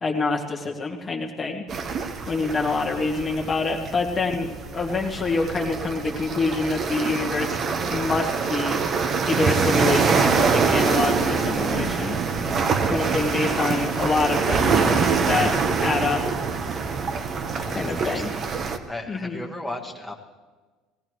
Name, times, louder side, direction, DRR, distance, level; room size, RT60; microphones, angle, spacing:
voice 1, 0.0-1.6 2.3-7.6 7.9-8.8 9.3-12.2 12.9-15.5 15.8-16.2 17.7-18.3 19.1-19.4, left 3 dB, 25° left, 1 dB, 1.5 m, -26 dB
sound 1, 1.7-18.8, right 5 dB, 40° right, 1.0 m, -24 dB
voice 2, 17.8-18.4 18.8-20.1, left 1 dB, ahead, -1 dB, 1.6 m, -36 dB
18.5 x 16.5 x 3.1 m, 1.3 s
cardioid pair, 115°, 0 cm